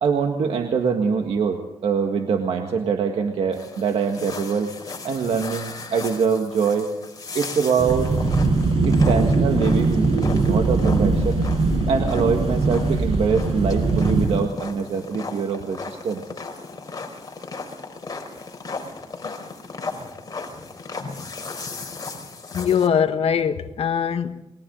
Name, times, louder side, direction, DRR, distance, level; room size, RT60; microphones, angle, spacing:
voice 1, 0.0-4.7 5.0-6.9 7.3-8.1 8.9-11.4 11.9-16.2, right 6 dB, 85° right, 1.8 m, -24 dB
sound 1, 3.5-22.9, left 4 dB, 40° left, 4.4 m, -36 dB
sound 2, 7.8-14.3, right 3 dB, 70° right, 7.1 m, -21 dB
voice 2, 22.5-24.4, left 7 dB, 80° left, 1.2 m, -22 dB
29.0 x 22.0 x 4.0 m
cardioid pair, 90°, 10 cm